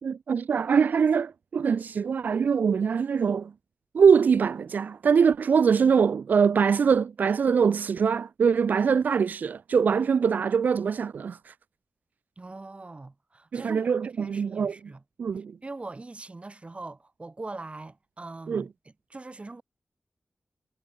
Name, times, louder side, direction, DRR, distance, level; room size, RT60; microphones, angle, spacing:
voice 1, 0.0-3.5 3.9-11.5 13.5-14.7 15.2-15.5 18.5-18.6, right 6 dB, 90° right, 1.1 m, -23 dB
voice 2, 12.4-13.9 14.2-15.0 15.6-19.6, right 3 dB, 45° right, 7.9 m, -42 dB
cardioid pair, 45°, 3 cm